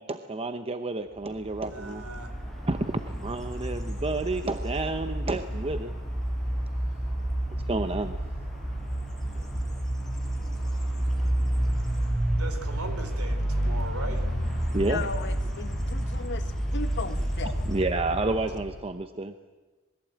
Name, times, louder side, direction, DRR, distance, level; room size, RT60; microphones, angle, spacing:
voice 1, 0.0-2.0 2.7-5.9 7.7-8.2 14.7-15.1 17.7-19.3, right 2 dB, 25° right, 8 dB, 0.9 m, -30 dB
sound 1, 1.3-18.9, right 1 dB, ahead, 5.2 m, -30 dB
voice 2, 1.7-2.3 12.4-14.2, right 2 dB, 70° right, 8 dB, 3.9 m, -38 dB
voice 3, 14.8-17.6, left 4 dB, 55° left, 9 dB, 1.6 m, -36 dB
26.5 x 21.5 x 8.8 m, 1.3 s
head